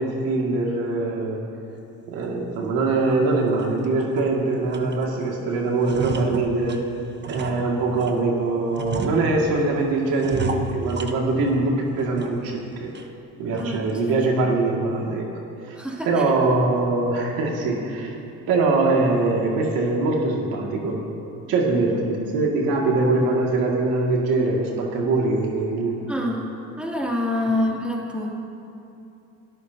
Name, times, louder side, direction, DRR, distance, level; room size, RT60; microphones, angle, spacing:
voice 1, 0.0-1.5 2.1-6.8 7.3-12.9 13.4-15.3 15.7-15.8 16.0-18.1 18.5-21.0 21.5-26.0, right 3 dB, 85° right, -2 dB, 2.3 m, -23 dB
sound 1, 2.2-2.4 2.8-3.0 3.4-4.3 4.7-5.3 5.6-8.2 8.7-9.7 10.2-11.6 12.0-12.6 12.9-13.0 13.6-13.9, right 4 dB, 30° right, 1.1 m, -33 dB
voice 2, 13.6-14.2 15.8-16.1 21.9-22.0 26.1-26.5 26.8-28.3, left 1 dB, 5° right, -4 dB, 2.9 m, -26 dB
28.0 x 13.5 x 2.9 m, 2.8 s
cardioid pair, 100°, 34 cm